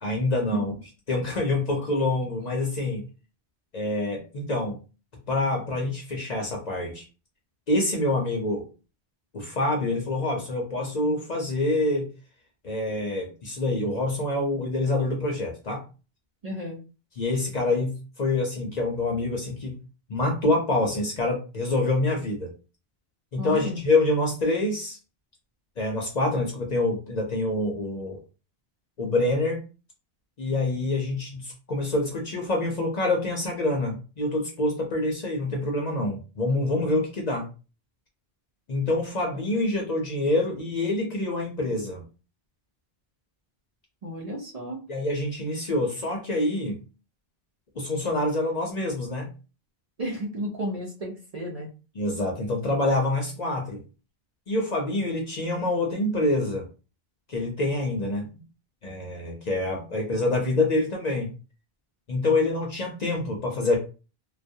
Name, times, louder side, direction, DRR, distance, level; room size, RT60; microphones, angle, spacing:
voice 1, 0.0-0.7 1.1-3.0 3.7-4.8 5.3-7.0 7.7-8.7 9.3-12.1 12.6-15.8 17.2-19.7 20.1-22.5 23.3-25.0 25.8-28.2 29.0-29.6 30.4-37.5 38.7-42.0 44.9-46.8 47.8-49.3 52.0-53.8 54.5-56.7 57.3-58.3 58.8-61.3 62.1-63.8, left 2 dB, 50° left, 1 dB, 0.6 m, -26 dB
voice 2, 16.4-16.8 23.4-23.8 39.3-39.4 44.0-44.8 50.0-51.7, equal, 45° right, -2 dB, 0.6 m, -33 dB
2.3 x 2.2 x 2.6 m, 0.33 s
omnidirectional pair, 1.0 m